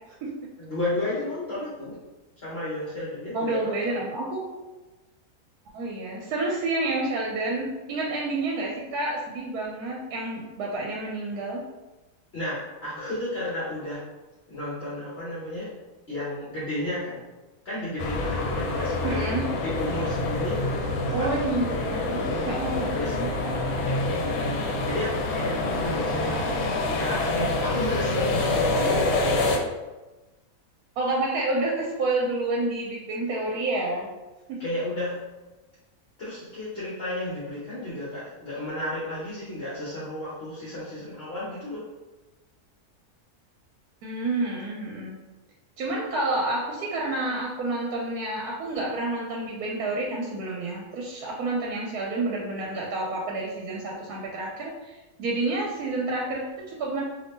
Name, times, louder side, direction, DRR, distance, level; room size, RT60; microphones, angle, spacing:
voice 1, 0.6-2.0 2.4-4.0 12.3-14.0 14.5-15.7 16.1-17.2 17.6-19.2 19.6-20.6 21.0-22.3 22.9-23.2 23.8-29.0 34.6-35.2 36.2-41.8, left 1 dB, 50° left, -9 dB, 0.9 m, -32 dB
voice 2, 3.3-4.5 5.7-11.6 19.0-19.5 21.1-23.3 31.0-34.1 34.5-34.6 44.0-45.2 45.8-57.0, right 2 dB, 75° right, -2 dB, 1.1 m, -29 dB
sound 1, 18.0-29.6, left 2 dB, 80° left, 1.1 m, -26 dB
2.7 x 2.7 x 3.5 m, 1.1 s
omnidirectional pair, 1.6 m